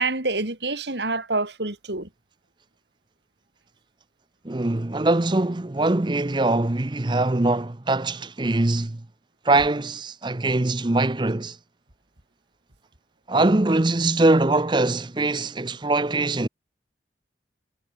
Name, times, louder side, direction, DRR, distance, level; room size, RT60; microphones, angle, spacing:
voice 1, 0.0-2.1, right 3 dB, 75° right, 3.6 m, -27 dB
voice 2, 4.4-9.0 9.4-11.6 13.3-16.5, right 2 dB, 25° right, 0.7 m, -22 dB
head